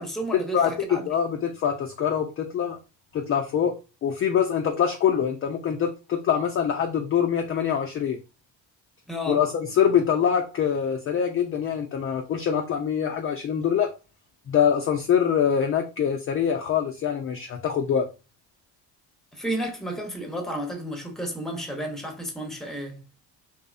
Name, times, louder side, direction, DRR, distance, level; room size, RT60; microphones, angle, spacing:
voice 1, 0.0-1.0 9.1-9.4 19.3-23.0, right 1 dB, ahead, 0.7 m, -32 dB
voice 2, 0.5-2.8 3.1-3.7 4.0-8.2 9.3-13.9 14.5-18.1, left 8 dB, 30° left, 0.4 m, -24 dB
2.6 x 2.1 x 2.4 m
supercardioid pair, 65°, 45 cm